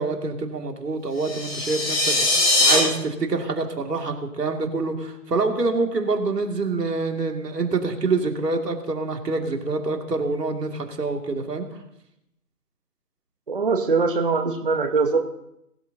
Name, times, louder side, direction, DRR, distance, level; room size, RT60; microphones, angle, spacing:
voice 1, 0.0-11.7, right 3 dB, 80° right, 3 dB, 2.5 m, -26 dB
sound 1, 1.2-2.8, left 2 dB, 20° left, 3.4 m, -21 dB
voice 2, 13.5-15.2, right 4 dB, 35° right, 3 dB, 0.8 m, -22 dB
21.0 x 12.5 x 2.8 m, 0.80 s
hypercardioid pair, 170°, 47 cm